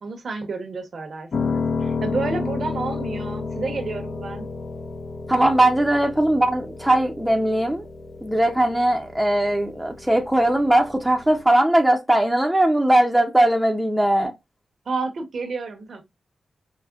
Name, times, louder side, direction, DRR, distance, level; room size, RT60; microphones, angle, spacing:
voice 1, 0.0-4.5 14.9-16.0, right 4 dB, 65° right, 0.8 m, -30 dB
Piano, 1.3-11.4, left 4 dB, 65° left, 0.5 m, -31 dB
voice 2, 5.3-7.9 8.2-14.3, right 1 dB, 5° right, 0.5 m, -19 dB
4.7 x 2.1 x 2.3 m
cardioid pair, 85°, 0 cm